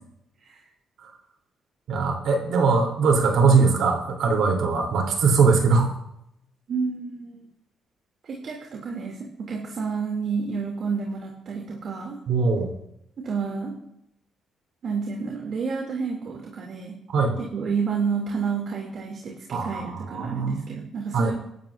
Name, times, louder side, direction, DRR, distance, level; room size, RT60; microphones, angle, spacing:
voice 1, 1.9-5.9 12.3-12.7 17.1-17.4 19.5-20.9 21.1-21.3, right 4 dB, 75° right, 1 dB, 3.3 m, -21 dB
voice 2, 6.7-7.4 8.2-12.2 13.2-13.8 14.8-17.0 17.4-21.3, right 5 dB, 55° right, -1 dB, 2.7 m, -30 dB
23.5 x 12.0 x 2.6 m, 0.79 s
cardioid pair, 90°, 0 cm